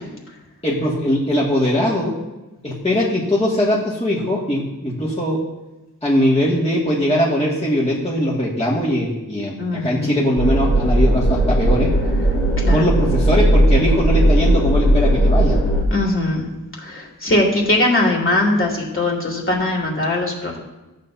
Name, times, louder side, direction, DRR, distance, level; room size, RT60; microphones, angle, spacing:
voice 1, 0.6-2.1 2.6-5.4 6.0-11.9 12.7-15.6, left 1 dB, 20° left, -6 dB, 2.1 m, -20 dB
voice 2, 9.6-10.2 12.6-12.9 15.9-16.5 16.8-20.6, left 2 dB, 40° left, -3 dB, 3.0 m, -20 dB
sound 1, 10.4-15.8, right 1 dB, 70° left, 3.3 m, -16 dB
14.5 x 7.6 x 2.8 m, 1.1 s
wide cardioid pair, 60°, 32 cm